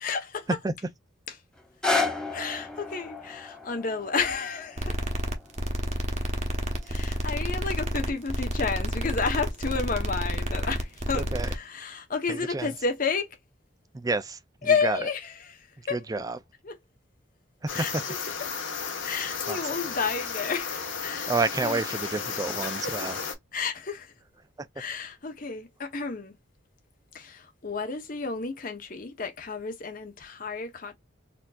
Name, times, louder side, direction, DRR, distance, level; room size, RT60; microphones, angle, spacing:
voice 1, 0.0-0.5 1.8-2.0 2.3-5.0 6.8-13.4 14.6-16.0 16.6-16.7 17.7-17.9 19.0-21.3 21.6-21.8 22.3-22.4 22.8-22.9 23.5-24.1 24.8-26.3 27.1-30.9, left 5 dB, 45° left, 0.8 m, -31 dB
sound 1, 1.6-7.6 8.3-8.4, left 3 dB, 5° left, 0.7 m, -34 dB
sound 2, 4.8-11.6, equal, 35° right, 0.9 m, -30 dB
voice 2, 11.1-11.5 12.3-12.7 13.9-15.1 15.8-16.4 17.6-18.0 19.5-19.6 21.3-23.2 24.6-24.7, right 3 dB, 20° right, 0.3 m, -30 dB
sound 3, 17.7-23.3, left 6 dB, 90° left, 1.2 m, -33 dB
4.2 x 2.7 x 2.3 m
head